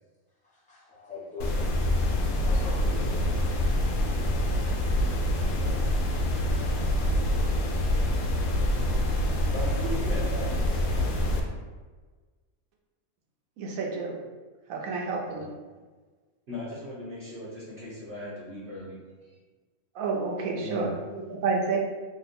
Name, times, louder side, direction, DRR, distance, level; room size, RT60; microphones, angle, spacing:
voice 1, 0.4-1.7 2.4-3.3, left 3 dB, 5° left, -8 dB, 0.7 m, -42 dB
sound 1, 1.4-11.4, left 1 dB, 85° left, 1.0 m, -26 dB
voice 2, 9.5-11.3 15.3-15.4 16.5-19.0 20.5-20.9, equal, 55° right, -11 dB, 1.2 m, -38 dB
voice 3, 13.6-14.2 14.7-15.5 19.9-21.8, right 4 dB, 75° right, 0 dB, 1.1 m, -30 dB
2.9 x 2.1 x 4.1 m, 1.4 s
omnidirectional pair, 1.5 m